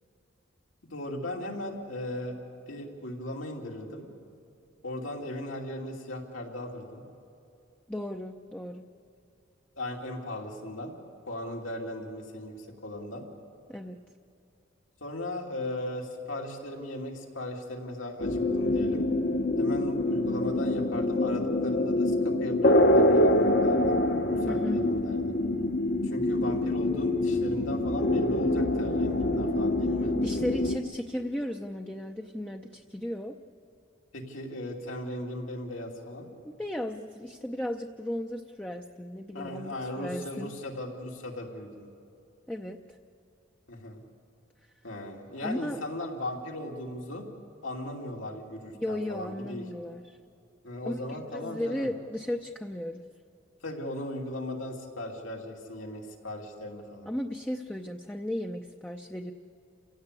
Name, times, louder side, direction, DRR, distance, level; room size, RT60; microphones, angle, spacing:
voice 1, 0.9-2.4 2.7-4.1 4.8-7.0 9.8-11.0 11.3-12.6 12.8-13.2 15.0-19.1 19.6-24.0 24.3-25.4 26.0-30.1 34.1-36.3 39.3-41.9 43.7-44.0 44.8-47.3 47.6-49.6 50.6-51.9 53.6-57.1, left 1 dB, 80° left, 0 dB, 2.9 m, -37 dB
voice 2, 7.9-8.8 13.7-14.0 24.4-24.9 30.2-33.4 36.4-40.5 42.5-43.0 45.4-45.8 48.7-50.2 50.8-53.0 57.1-59.3, left 1 dB, 5° left, 3 dB, 0.6 m, -35 dB
sound 1, 18.2-30.8, left 1 dB, 50° left, 1.1 m, -25 dB
29.0 x 16.5 x 8.3 m, 2.6 s
head